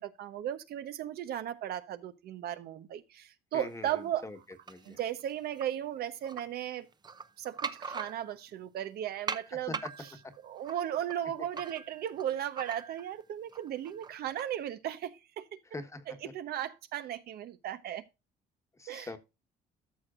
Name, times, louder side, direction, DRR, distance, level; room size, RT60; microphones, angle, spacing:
voice 1, 0.0-4.3 4.8-6.9 7.4-10.1 10.4-15.6 16.2-18.1 18.9-19.1, right 11 dB, 70° right, 1.0 m, -36 dB
voice 2, 3.5-4.4 4.7-5.0 9.7-9.9 10.2-10.3 15.7-16.0 18.8-19.2, left 2 dB, 15° left, 1.3 m, -42 dB
sound 1, 4.7-5.6 6.2-6.4 6.9-8.5 9.3-13.2 13.5-14.6, right 5 dB, 25° right, 0.8 m, -41 dB
13.5 x 6.2 x 2.5 m
cardioid pair, 110°, 17 cm